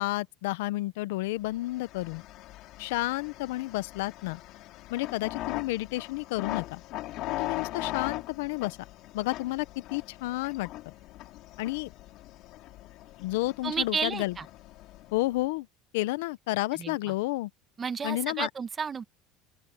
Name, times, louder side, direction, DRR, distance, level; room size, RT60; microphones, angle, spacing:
voice 1, 0.0-2.2 2.8-4.4 4.9-6.8 7.3-8.8 9.1-9.7 9.9-10.9 11.6-11.9 13.2-14.4 15.1-15.7 15.9-17.5 18.0-18.5, left 19 dB, 90° left, 0.6 m, -31 dB
sound 1, 1.6-15.4, left 16 dB, 55° left, 3.5 m, -40 dB
voice 2, 13.6-14.4 16.7-17.1 17.8-19.0, right 6 dB, 25° right, 1.1 m, -32 dB
open air
cardioid pair, 140°, 0 cm